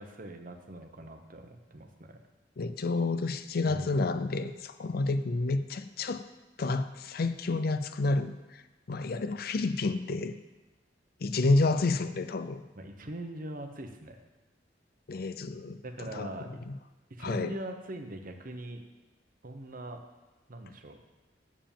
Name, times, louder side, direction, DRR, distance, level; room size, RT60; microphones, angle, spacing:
voice 1, 0.0-2.2 3.6-4.0 12.8-14.2 15.8-16.6 17.1-18.8 19.4-20.0 20.5-21.0, right 1 dB, 50° right, 5 dB, 1.0 m, -42 dB
voice 2, 2.6-6.2 6.6-8.3 8.9-10.4 11.2-12.6 15.1-15.8 16.1-16.3 16.7-16.8 17.2-17.5, left 3 dB, 60° left, 11 dB, 0.5 m, -29 dB
7.2 x 7.2 x 7.3 m, 1.1 s
head